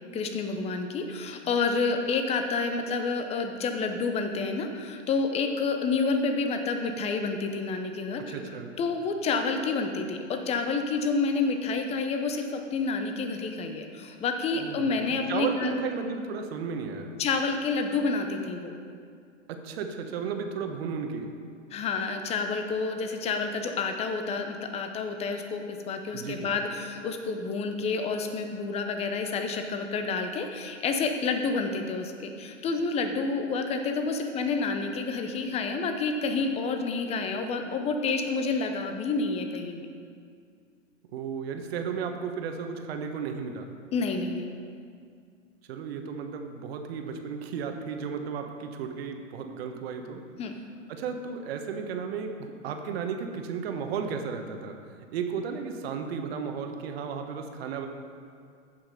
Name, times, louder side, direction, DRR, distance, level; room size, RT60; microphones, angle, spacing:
voice 1, 0.1-8.4 8.8-15.7 17.2-18.8 21.7-39.9 43.9-44.5 50.4-50.5, left 4 dB, 15° left, 6 dB, 0.8 m, -29 dB
voice 2, 8.2-8.7 14.6-17.1 19.5-21.3 26.1-26.6 41.1-43.7 45.7-50.2 50.9-54.8 55.1-57.9, right 6 dB, 50° right, 5 dB, 1.3 m, -34 dB
14.5 x 5.8 x 5.3 m, 2.3 s
hypercardioid pair, 130°, 39 cm